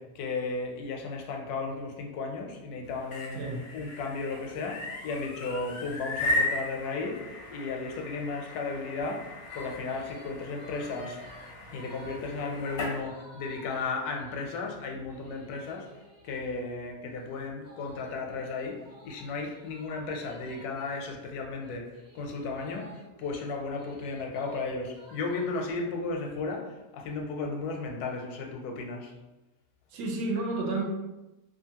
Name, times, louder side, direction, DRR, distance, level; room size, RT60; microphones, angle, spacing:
voice 1, 0.0-3.4 3.7-11.2 11.7-29.1, left 3 dB, 85° left, 2 dB, 1.1 m, -35 dB
sound 1, 2.9-13.0, left 2 dB, 60° left, 0.6 m, -36 dB
sound 2, 9.5-16.3 17.6-24.6 24.9-25.7, right 1 dB, 25° right, 0.3 m, -53 dB
voice 2, 29.9-30.8, right 2 dB, 75° right, 0 dB, 1.1 m, -30 dB
2.7 x 2.5 x 2.8 m, 1.0 s
omnidirectional pair, 1.6 m